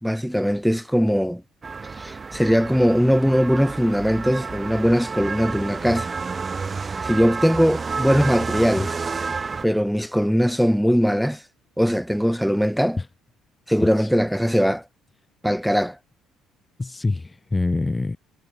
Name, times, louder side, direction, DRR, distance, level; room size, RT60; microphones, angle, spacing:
voice 1, 0.0-1.4 2.0-6.1 7.0-8.9 9.6-11.4 11.8-13.0 13.7-14.8 15.4-16.0, equal, ahead, 1.9 m, -20 dB
sound 1, 1.6-9.6, right 4 dB, 35° right, 1.6 m, -30 dB
voice 2, 13.8-14.1 16.8-18.2, left 3 dB, 20° left, 4.4 m, -25 dB
hypercardioid pair, 55°, 0 cm